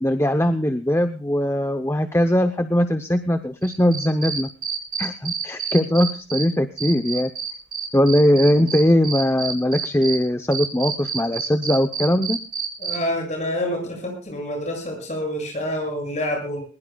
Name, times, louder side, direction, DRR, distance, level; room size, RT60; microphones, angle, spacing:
voice 1, 0.0-4.5 5.0-7.3 7.9-12.4, left 1 dB, 15° left, 8 dB, 0.7 m, -20 dB
Cricket, 3.6-6.4 6.8-10.1 10.5-12.9, right 7 dB, 45° right, 6.6 m, -28 dB
voice 2, 12.8-16.6, left 1 dB, 35° left, 2 dB, 7.4 m, -27 dB
21.0 x 20.5 x 2.3 m, 0.39 s
head